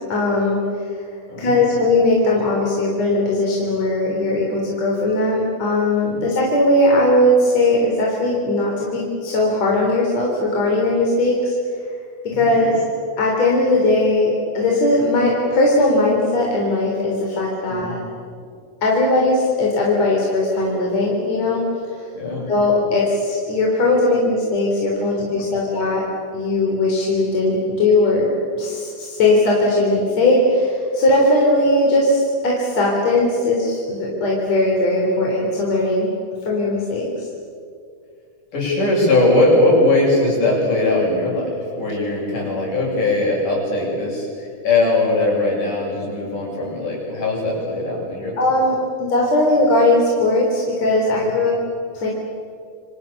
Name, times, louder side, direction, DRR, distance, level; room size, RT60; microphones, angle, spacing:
voice 1, 0.1-0.6 1.4-11.5 12.3-12.8 13.2-18.0 18.8-21.6 22.5-26.0 26.3-28.3 28.5-36.1 36.4-37.1 48.4-51.5 52.0-52.1, left 2 dB, 55° left, -2 dB, 5.0 m, -18 dB
voice 2, 1.3-1.6 6.1-6.2 12.3-12.7 17.7-18.0 22.1-22.5 25.0-25.2 38.5-48.4 51.1-51.3, left 2 dB, 80° left, -3 dB, 9.6 m, -20 dB
29.5 x 25.5 x 7.2 m, 2.2 s
omnidirectional pair, 3.6 m